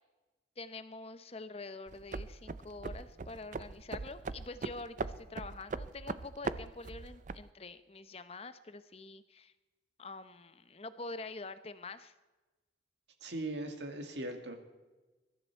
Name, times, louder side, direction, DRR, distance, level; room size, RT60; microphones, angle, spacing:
voice 1, 0.6-9.5 10.0-12.1, left 3 dB, 30° left, 12 dB, 0.7 m, -46 dB
sound 1, 1.9-7.5, right 3 dB, 40° right, 0.4 m, -40 dB
voice 2, 13.2-14.6, right 1 dB, 70° right, 5 dB, 1.9 m, -39 dB
21.5 x 12.5 x 4.5 m, 1.2 s
head